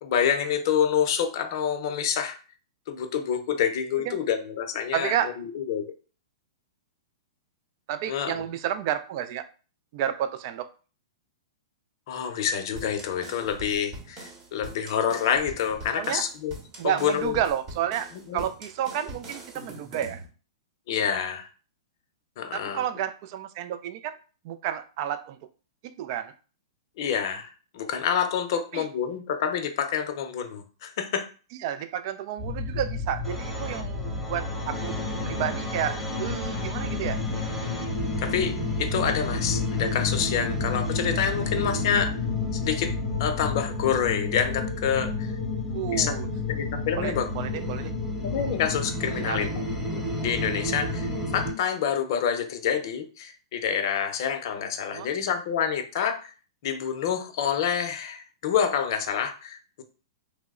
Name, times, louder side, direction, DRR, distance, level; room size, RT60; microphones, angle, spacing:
voice 1, 0.0-2.4 2.9-5.9 8.1-8.3 12.1-16.5 16.8-17.4 18.3-18.4 20.9-21.5 22.4-22.8 27.0-31.3 38.2-42.1 42.5-42.9 43.2-45.3 45.9-46.1 46.5-47.6 48.2-49.5 49.8-51.1 51.3-56.3 56.6-59.8, left 8 dB, 55° left, 6 dB, 0.5 m, -27 dB
voice 2, 4.9-5.3 7.9-9.4 9.9-10.7 16.0-16.2 16.8-20.2 22.5-24.2 24.4-25.4 26.0-26.3 28.7-28.9 31.6-37.2 45.7-46.3 46.9-47.9 49.2-49.5 54.9-55.1, right 10 dB, 50° right, 10 dB, 0.3 m, -31 dB
sound 1, 12.8-20.3, right 1 dB, 30° right, 0.9 m, -43 dB
sound 2, 32.4-51.5, left 3 dB, 5° left, 0.9 m, -30 dB
3.0 x 2.0 x 3.6 m, 0.37 s
hypercardioid pair, 135°, 3 cm